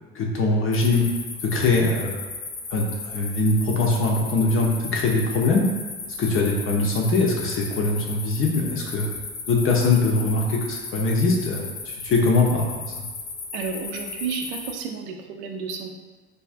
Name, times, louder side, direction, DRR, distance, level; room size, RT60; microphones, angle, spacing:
voice 1, 0.1-1.1 1.4-2.2 2.7-5.7 6.2-9.1 9.5-12.9, left 3 dB, 35° left, -1 dB, 0.6 m, -22 dB
sound 1, 0.7-14.7, left 4 dB, 80° left, 0.6 m, -35 dB
voice 2, 13.5-15.9, right 5 dB, 60° right, 3 dB, 0.5 m, -31 dB
3.4 x 2.4 x 2.4 m, 1.3 s
hypercardioid pair, 60°, 35 cm